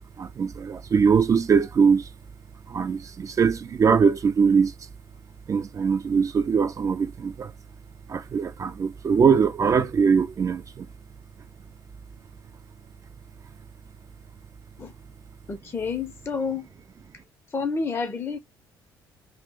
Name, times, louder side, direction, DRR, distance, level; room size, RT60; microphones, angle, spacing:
voice 1, 0.2-2.1 2.7-4.7 5.5-7.5 8.1-10.9, right 6 dB, 30° right, 0.4 m, -22 dB
voice 2, 15.5-16.7 17.5-18.4, left 5 dB, 20° left, 0.6 m, -29 dB
2.6 x 2.1 x 3.6 m
figure-of-eight pair, 50°, 11 cm